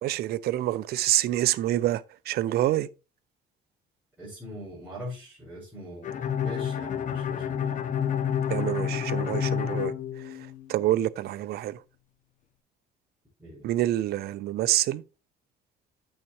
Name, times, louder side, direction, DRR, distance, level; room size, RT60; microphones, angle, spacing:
voice 1, 0.0-2.9 8.5-11.8 13.6-15.0, right 14 dB, 70° right, 0.6 m, -27 dB
voice 2, 4.2-7.9 13.4-13.6, equal, 10° right, 5.5 m, -42 dB
Bowed string instrument, 6.0-10.8, left 8 dB, 50° left, 0.9 m, -29 dB
8.8 x 6.5 x 3.1 m
cardioid pair, 110°, 17 cm